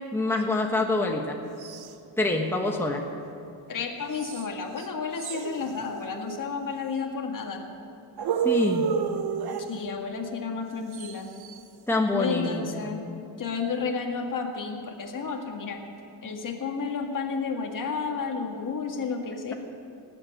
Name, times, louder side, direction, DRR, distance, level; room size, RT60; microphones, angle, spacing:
voice 1, 0.1-1.4 2.2-3.0 8.4-8.9 11.9-12.9, left 2 dB, 5° left, 1 dB, 1.2 m, -26 dB
sound 1, 1.6-1.9 4.1-4.5 4.8-4.9 5.2-6.4 8.2-9.8 10.9-11.6, right 7 dB, 55° right, 1.0 m, -30 dB
voice 2, 3.7-7.7 9.7-11.3 12.1-13.0 13.4-15.8 16.2-19.5, left 5 dB, 45° left, 2 dB, 2.0 m, -31 dB
17.5 x 8.2 x 9.2 m, 2.6 s
cardioid pair, 115°, 45 cm